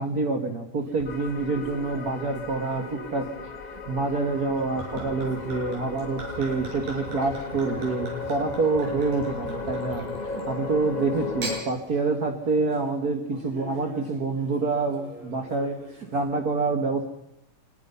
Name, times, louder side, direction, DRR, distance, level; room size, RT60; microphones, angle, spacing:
voice 1, 0.0-10.0 10.3-17.1, right 3 dB, 40° right, 4 dB, 1.4 m, -27 dB
sound 1, 0.8-16.3, right 2 dB, 85° right, 5.4 m, -46 dB
sound 2, 1.0-11.6, left 3 dB, 30° left, 0.8 m, -36 dB
Gurgling / Chink clink / Liquid, 4.4-10.5 11.2-11.6, right 2 dB, 70° right, 8.4 m, -39 dB
25.0 x 21.5 x 5.6 m, 0.82 s
omnidirectional pair, 3.6 m